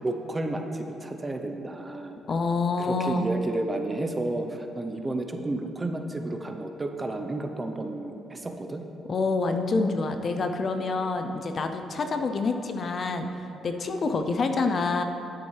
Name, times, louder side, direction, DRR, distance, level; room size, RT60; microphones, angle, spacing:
voice 1, 0.0-2.1 2.8-8.8, right 2 dB, 20° right, 4 dB, 0.7 m, -31 dB
voice 2, 2.3-3.3 9.1-13.3 13.6-15.0, left 3 dB, 45° left, 6 dB, 0.5 m, -27 dB
10.0 x 8.7 x 3.3 m, 2.9 s
cardioid pair, 90°, 0 cm